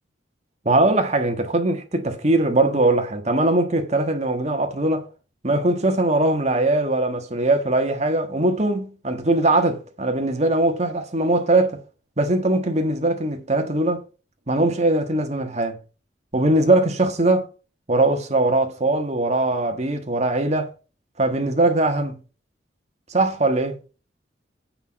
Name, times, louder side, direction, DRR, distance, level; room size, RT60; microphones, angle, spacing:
voice 1, 0.6-5.1 5.4-11.8 12.2-14.0 14.5-15.8 16.3-17.5 17.9-20.7 21.2-22.2 23.1-23.8, right 2 dB, 35° right, 1.5 m, -21 dB
8.3 x 5.8 x 5.6 m
head